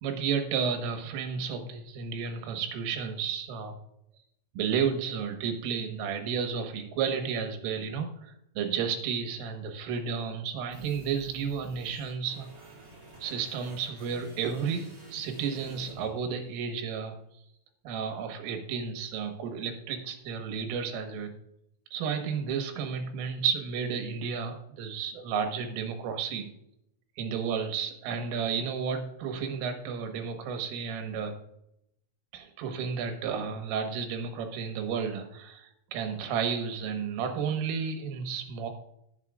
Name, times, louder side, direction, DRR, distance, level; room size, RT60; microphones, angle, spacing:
voice 1, 0.0-3.7 4.6-12.9 13.2-17.2 17.9-21.3 21.9-26.5 27.2-31.3 32.3-38.7, right 6 dB, 90° right, 5 dB, 4.0 m, -32 dB
sound 1, 10.7-16.7, right 1 dB, 35° right, 1.5 m, -50 dB
18.0 x 7.6 x 2.5 m, 0.77 s
omnidirectional pair, 5.7 m